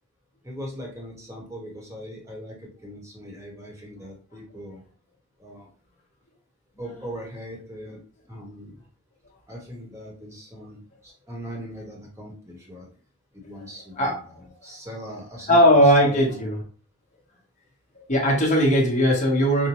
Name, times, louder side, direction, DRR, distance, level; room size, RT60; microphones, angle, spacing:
voice 1, 0.4-4.8 5.4-5.7 6.8-8.0 8.3-8.8 9.5-12.9 13.3-14.2 14.6-16.4, equal, 15° right, -2 dB, 1.1 m, -40 dB
voice 2, 14.0-14.4 15.5-16.6 17.9-19.7, equal, 35° left, -2 dB, 1.1 m, -19 dB
5.3 x 2.2 x 3.0 m, 0.42 s
head